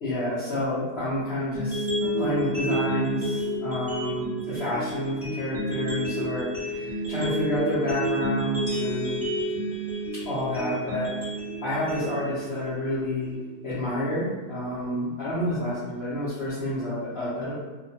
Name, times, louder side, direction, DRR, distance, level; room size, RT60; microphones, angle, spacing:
voice 1, 0.0-1.9 2.2-9.2 10.2-11.1 11.6-13.4 13.6-17.5, left 1 dB, 50° left, -13 dB, 0.9 m, -29 dB
sound 1, 1.5-13.6, right 1 dB, 15° right, 0.8 m, -30 dB
Harp, 2.0-5.4 5.7-6.8, left 2 dB, 50° right, 0.8 m, -42 dB
sound 2, 8.7-11.6, left 2 dB, 70° left, 0.6 m, -46 dB
2.8 x 2.1 x 2.7 m, 1.3 s
omnidirectional pair, 1.6 m